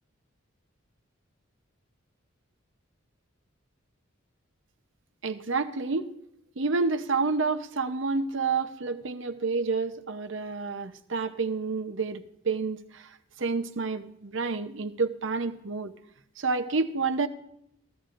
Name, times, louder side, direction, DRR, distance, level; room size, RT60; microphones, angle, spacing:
voice 1, 5.2-6.1 6.6-15.9 16.4-17.3, right 4 dB, 65° right, 8 dB, 0.8 m, -29 dB
15.5 x 13.5 x 2.5 m, 0.75 s
head